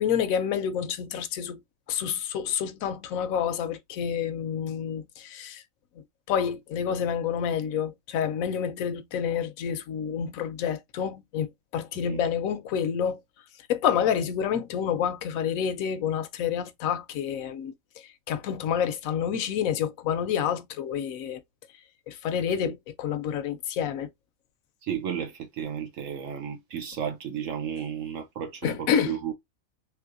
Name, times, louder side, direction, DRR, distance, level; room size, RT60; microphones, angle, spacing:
voice 1, 0.0-1.6 1.9-5.6 6.0-13.2 13.7-21.4 22.1-24.1 28.6-29.2, left 8 dB, 80° left, 1.0 m, -28 dB
voice 2, 24.8-29.3, right 8 dB, 70° right, 1.0 m, -33 dB
3.3 x 3.2 x 2.5 m
omnidirectional pair, 1.4 m